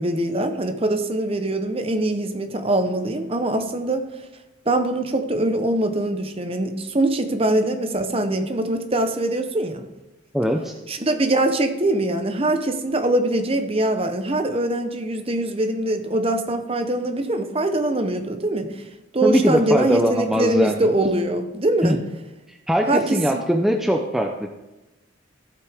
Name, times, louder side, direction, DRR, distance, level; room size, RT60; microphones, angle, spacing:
voice 1, 0.0-4.0 4.7-9.9 10.9-18.7 19.1-22.0 22.9-23.5, right 1 dB, 30° right, 7 dB, 0.9 m, -23 dB
voice 2, 10.3-10.7 19.2-20.8 21.8-22.0 22.7-24.5, equal, ahead, 2 dB, 0.5 m, -21 dB
14.5 x 8.1 x 3.6 m, 1.0 s
head